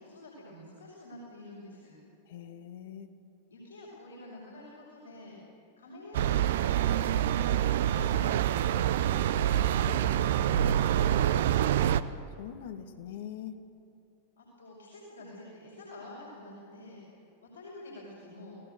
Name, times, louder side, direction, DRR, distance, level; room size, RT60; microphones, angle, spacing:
voice 1, 0.0-2.0 3.5-5.4 5.8-7.2 7.6-11.9 14.4-18.6, left 1 dB, 75° left, -5 dB, 5.6 m, -48 dB
voice 2, 2.3-3.1 12.4-13.6, left 9 dB, 55° left, 9 dB, 1.5 m, -42 dB
sound 1, 6.1-12.0, right 11 dB, 55° right, 0.7 m, -26 dB
29.0 x 18.0 x 6.5 m, 2.7 s
figure-of-eight pair, 90°, 0 cm